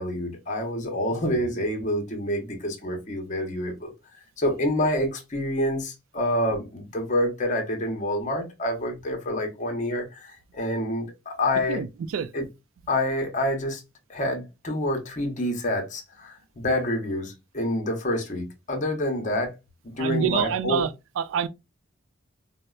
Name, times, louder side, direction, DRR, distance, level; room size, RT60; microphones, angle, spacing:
voice 1, 0.0-3.9 4.4-11.8 12.3-12.4 12.9-13.8 14.1-19.6 19.8-20.9, left 1 dB, 35° left, 0.7 m, -27 dB
voice 2, 20.0-20.9 21.2-21.5, right 7 dB, 80° right, 0.3 m, -26 dB
4.1 x 2.1 x 2.2 m
head